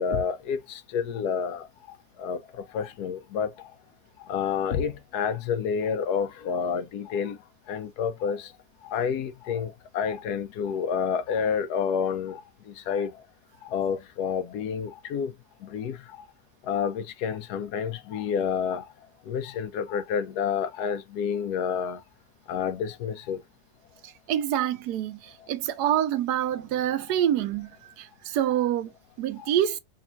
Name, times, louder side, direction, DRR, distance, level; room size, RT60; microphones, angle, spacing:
voice 1, 0.0-3.7 4.2-7.4 7.7-8.5 8.8-13.1 13.6-15.3 15.6-16.2 16.6-18.8 19.3-22.0 22.5-23.4 29.4-29.5, left 7 dB, 85° left, 1.2 m, -29 dB
voice 2, 24.0-28.9 29.2-29.8, right 11 dB, 90° right, 1.2 m, -27 dB
5.3 x 2.4 x 2.6 m
omnidirectional pair, 1.7 m